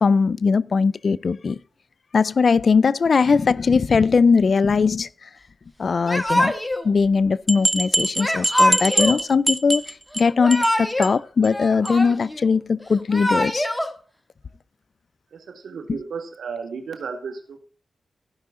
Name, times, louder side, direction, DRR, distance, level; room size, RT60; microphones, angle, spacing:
voice 1, 0.0-1.6 2.1-5.1 5.8-6.5 6.8-9.8 10.2-13.7, left 5 dB, 60° left, 0.4 m, -20 dB
Yell / Crying sobbing, 6.0-6.8 8.2-9.2 10.2-11.1 11.4-12.4 12.9-13.9, left 1 dB, 10° left, 1.5 m, -23 dB
sound 1, 7.0-7.1 7.5-10.2 10.5-10.8 11.0-11.1 11.4-11.5 11.9-12.0, right 2 dB, 15° right, 0.4 m, -23 dB
voice 2, 15.3-17.6, right 5 dB, 90° right, 1.8 m, -33 dB
15.0 x 5.6 x 3.7 m
cardioid pair, 70°, 0 cm